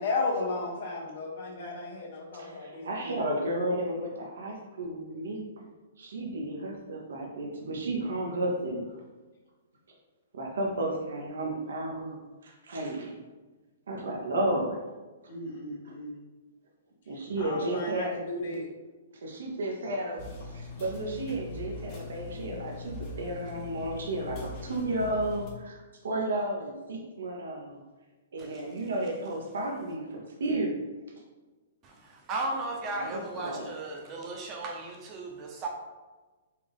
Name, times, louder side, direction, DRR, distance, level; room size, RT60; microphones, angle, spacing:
voice 1, 0.0-3.4 15.3-16.2 17.1-18.7, left 3 dB, 65° left, -1 dB, 1.1 m, -34 dB
voice 2, 2.3-5.4 6.0-8.8 10.3-12.2 12.4-13.2 13.9-14.8 17.1-18.1 19.2-20.2 20.5-27.8 28.3-30.9 33.0-33.7, right 1 dB, 80° right, 0 dB, 0.8 m, -33 dB
sound 1, 20.2-25.5, left 2 dB, 35° left, 0.9 m, -41 dB
voice 3, 31.8-35.7, right 2 dB, 30° right, 0 dB, 0.8 m, -36 dB
4.2 x 2.5 x 3.4 m, 1.2 s
hypercardioid pair, 140°, 0 cm